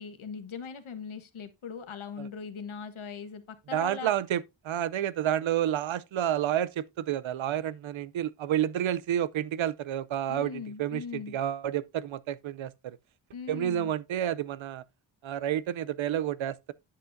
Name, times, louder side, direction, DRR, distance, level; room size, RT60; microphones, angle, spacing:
voice 1, 0.0-4.1 10.3-11.4 13.3-13.9, left 6 dB, 80° left, 1.4 m, -40 dB
voice 2, 3.7-13.0 13.5-14.8 15.2-16.7, right 11 dB, 75° right, 0.6 m, -30 dB
9.9 x 7.9 x 2.6 m
wide cardioid pair, 170°, 48 cm